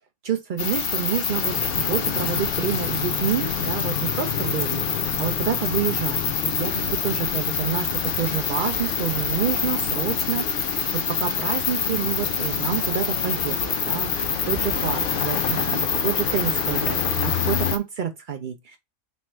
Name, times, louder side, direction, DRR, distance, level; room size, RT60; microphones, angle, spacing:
voice 1, 0.2-18.8, right 8 dB, 85° right, 0.4 m, -28 dB
sound 1, 0.6-17.8, left 6 dB, 50° left, 0.8 m, -26 dB
sound 2, 1.3-17.8, left 8 dB, 80° left, 0.4 m, -31 dB
3.4 x 3.2 x 4.3 m
omnidirectional pair, 1.5 m